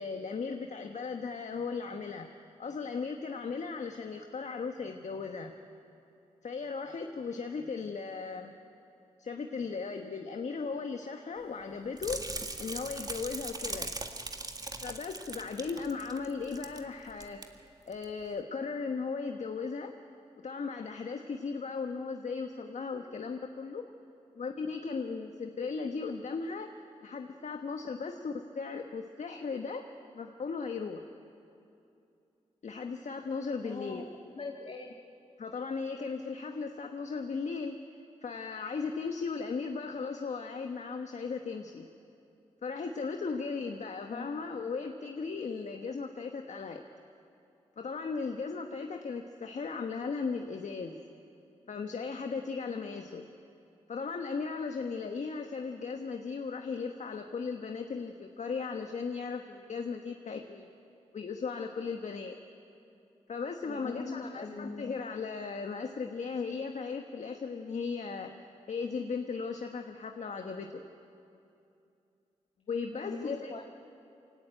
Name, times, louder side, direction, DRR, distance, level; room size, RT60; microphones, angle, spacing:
voice 1, 0.0-2.3 2.6-5.5 6.4-8.5 9.2-12.2 12.6-13.9 14.8-19.9 20.4-23.8 24.3-26.7 27.0-29.8 30.1-31.1 32.6-34.0 35.4-41.9 42.6-46.8 47.8-51.0 51.7-53.3 53.9-60.7 61.1-62.3 63.3-68.3 68.7-70.8 72.7-73.5, left 5 dB, 65° left, 5 dB, 1.2 m, -37 dB
sound 1, 12.0-16.8 17.1-17.4 17.9-18.0, right 2 dB, 30° right, 1.8 m, -40 dB
voice 2, 33.6-34.1 34.4-34.9 44.1-44.4 63.7-64.9 72.9-73.6, left 3 dB, 50° left, 2 dB, 1.6 m, -41 dB
23.0 x 17.5 x 9.0 m, 2.6 s
cardioid pair, 50°, 13 cm